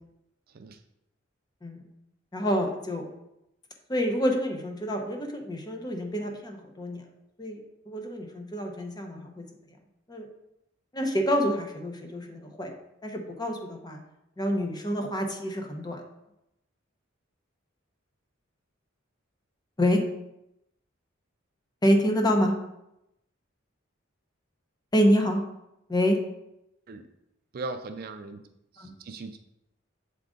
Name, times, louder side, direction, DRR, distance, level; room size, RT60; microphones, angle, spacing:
voice 1, 2.3-3.1 3.9-7.0 7.4-7.6 7.9-9.4 10.1-10.3 10.9-12.7 13.0-14.0 14.4-16.0 19.8-20.0 21.8-22.5 24.9-25.4 25.9-26.2 28.8-28.9, equal, 20° left, 3 dB, 0.8 m, -27 dB
voice 2, 27.5-28.4 28.8-29.6, right 3 dB, 50° right, 8 dB, 0.4 m, -38 dB
7.6 x 3.7 x 3.8 m, 0.86 s
head